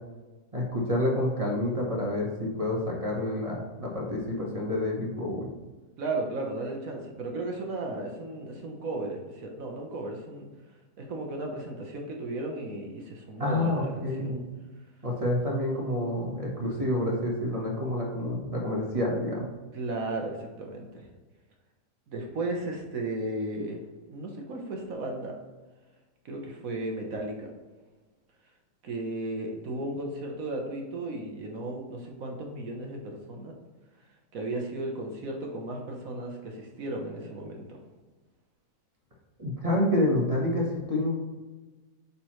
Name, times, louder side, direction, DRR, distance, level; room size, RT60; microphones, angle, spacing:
voice 1, 0.5-5.5 13.4-14.5 15.0-19.5 39.4-41.2, left 1 dB, 20° right, -2 dB, 1.3 m, -28 dB
voice 2, 6.0-10.5 11.0-14.4 19.7-21.1 22.1-23.8 24.1-25.4 26.2-27.5 28.8-33.5 34.3-37.6, right 2 dB, 60° right, 1 dB, 1.4 m, -35 dB
8.2 x 4.2 x 3.1 m, 1.3 s
omnidirectional pair, 1.7 m